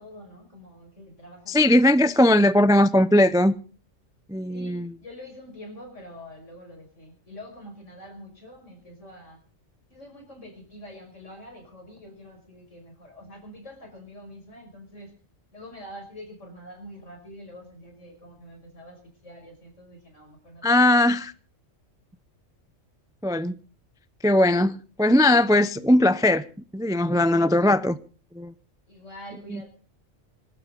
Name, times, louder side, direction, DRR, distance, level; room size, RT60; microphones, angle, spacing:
voice 1, 0.0-2.7 4.5-9.4 9.9-15.1 15.5-21.1 28.9-29.7, left 1 dB, 70° left, 6.0 m, -45 dB
voice 2, 1.5-3.5 4.3-4.9 20.6-21.3 23.2-23.5 24.2-26.4 26.7-28.0 28.3-28.5 29.5-29.6, left 1 dB, 5° right, 0.4 m, -19 dB
26.0 x 12.5 x 3.9 m
omnidirectional pair, 1.3 m